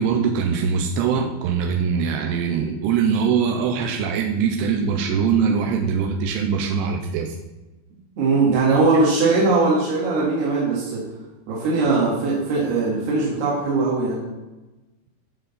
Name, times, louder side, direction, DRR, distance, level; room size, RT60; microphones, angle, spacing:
voice 1, 0.0-7.4, right 6 dB, 80° right, 2 dB, 2.5 m, -22 dB
voice 2, 8.2-11.0 11.5-14.2, right 3 dB, 60° right, -6 dB, 3.4 m, -20 dB
12.0 x 6.6 x 4.2 m, 1.1 s
omnidirectional pair, 5.5 m